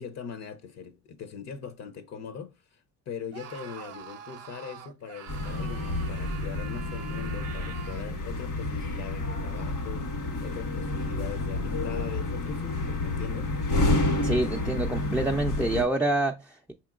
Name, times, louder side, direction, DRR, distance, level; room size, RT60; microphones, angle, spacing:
voice 1, 0.0-10.1 10.4-13.5, left 7 dB, 60° left, 0.6 m, -41 dB
Screaming, 3.3-8.2, right 9 dB, 55° right, 0.6 m, -44 dB
sound 1, 5.3-15.8, left 2 dB, 85° left, 1.5 m, -29 dB
voice 2, 14.2-16.7, right 2 dB, 5° right, 0.3 m, -27 dB
5.1 x 2.9 x 2.3 m
cardioid pair, 90°, 30 cm